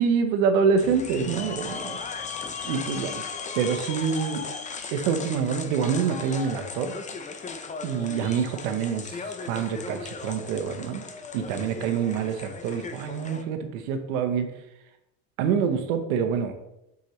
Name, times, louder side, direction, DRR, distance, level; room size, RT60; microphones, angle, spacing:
voice 1, 0.0-2.0 2.6-3.3 3.6-4.4 4.9-6.9 7.8-9.2 9.4-11.0 11.3-14.5 15.4-16.5, right 6 dB, 80° right, 8 dB, 1.0 m, -26 dB
sound 1, 0.8-13.4, left 5 dB, 20° left, 0.6 m, -37 dB
6.6 x 5.3 x 3.2 m, 0.87 s
supercardioid pair, 105°, 41 cm